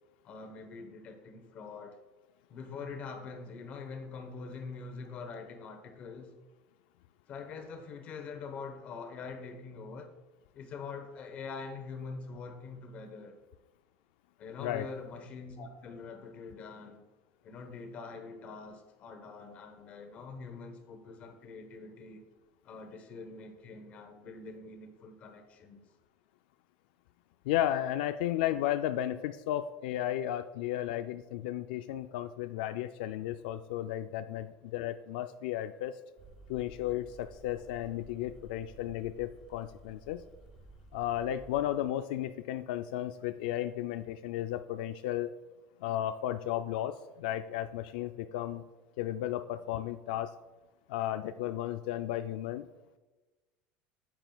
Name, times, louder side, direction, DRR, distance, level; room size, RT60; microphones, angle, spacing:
voice 1, 0.2-2.0 2.5-6.3 7.3-10.1 10.5-13.4 14.4-17.0 17.4-22.2 22.6-25.8, left 4 dB, 30° left, 6 dB, 0.9 m, -44 dB
voice 2, 27.4-36.0 36.5-40.2 40.9-45.3 45.8-48.6 49.0-50.3 50.9-52.7, left 12 dB, 80° left, 10 dB, 0.3 m, -34 dB
sound 1, 36.2-41.6, right 2 dB, 15° right, 0.4 m, -54 dB
10.0 x 7.9 x 2.3 m, 1.2 s
cardioid pair, 180°, 5 cm